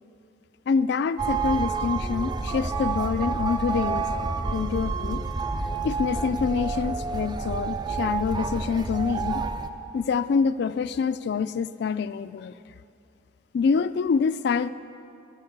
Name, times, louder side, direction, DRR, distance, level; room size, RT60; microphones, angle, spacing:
voice 1, 0.7-5.2 5.8-9.4 9.9-12.5 13.5-14.7, left 5 dB, 60° left, 14 dB, 0.3 m, -26 dB
sound 1, 1.2-9.7, right 4 dB, 20° right, 0.4 m, -29 dB
11.0 x 6.5 x 8.4 m, 2.6 s
head